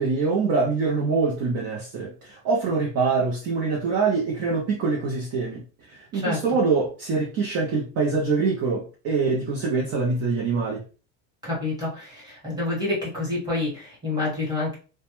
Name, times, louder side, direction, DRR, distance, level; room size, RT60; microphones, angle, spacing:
voice 1, 0.0-10.8, right 4 dB, 40° right, 0.5 m, -24 dB
voice 2, 11.4-14.7, left 2 dB, 10° right, 1.0 m, -28 dB
2.1 x 2.0 x 2.9 m
cardioid pair, 180°, 39 cm